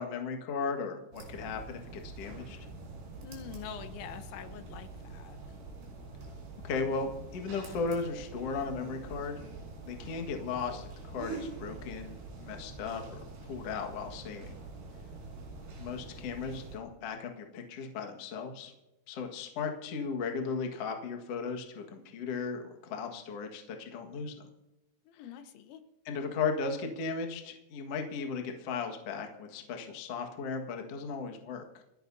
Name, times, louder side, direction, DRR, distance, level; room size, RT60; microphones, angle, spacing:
voice 1, 0.0-2.6 6.6-9.4 9.8-14.6 15.8-18.7 19.1-24.3 26.0-31.6, left 5 dB, 60° left, 3 dB, 1.6 m, -36 dB
sound 1, 1.1-16.8, right 3 dB, 60° right, 5.8 m, -45 dB
voice 2, 3.2-5.6 25.0-25.8, left 8 dB, 75° left, 9 dB, 3.3 m, -45 dB
29.5 x 11.0 x 2.8 m, 0.93 s
omnidirectional pair, 5.5 m